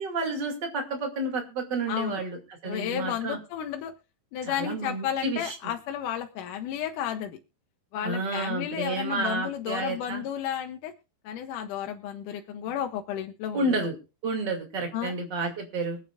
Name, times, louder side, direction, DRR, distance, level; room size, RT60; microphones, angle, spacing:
voice 1, 0.0-2.4 2.6-3.4 4.5-5.6 8.0-10.2 13.5-13.9 14.2-16.0, right 3 dB, 35° right, 2 dB, 2.6 m, -30 dB
voice 2, 1.9-2.2 2.6-4.0 4.3-7.4 7.9-10.9 11.2-13.8 14.9-15.2, left 10 dB, 75° left, 4 dB, 2.2 m, -32 dB
24.0 x 8.5 x 2.4 m, 0.30 s
omnidirectional pair, 4.0 m